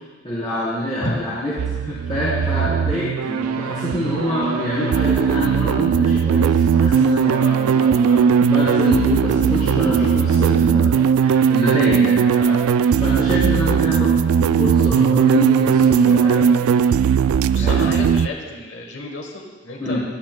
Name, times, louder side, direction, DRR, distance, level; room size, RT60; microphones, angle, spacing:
voice 1, 0.2-16.5 17.5-17.9 19.8-20.0, equal, 25° left, -12 dB, 3.2 m, -26 dB
sound 1, 1.6-18.3, right 7 dB, 90° right, 0.3 m, -18 dB
voice 2, 17.5-20.0, left 2 dB, 55° left, 2 dB, 1.1 m, -30 dB
24.0 x 9.4 x 2.2 m, 1.4 s
head